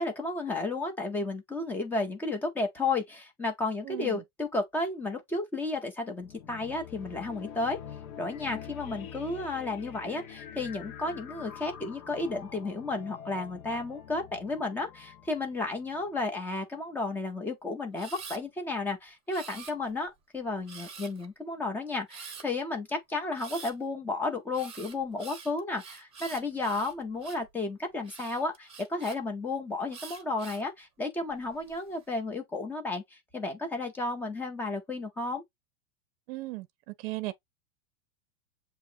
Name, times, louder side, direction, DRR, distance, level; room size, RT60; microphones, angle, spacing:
voice 1, 0.0-7.8 8.2-35.4, left 3 dB, 5° left, 0.4 m, -33 dB
voice 2, 3.8-4.2 36.3-37.3, right 20 dB, 45° right, 0.6 m, -37 dB
sound 1, 6.2-16.4, left 9 dB, 80° left, 1.2 m, -45 dB
Camera, 18.0-18.4 19.3-20.1 20.7-21.3 22.1-22.5 23.3-23.7 24.5-27.5 28.0-29.2 29.9-30.7 31.3-31.8, right 5 dB, 15° right, 0.8 m, -46 dB
7.3 x 2.9 x 2.5 m
supercardioid pair, 155°, 42 cm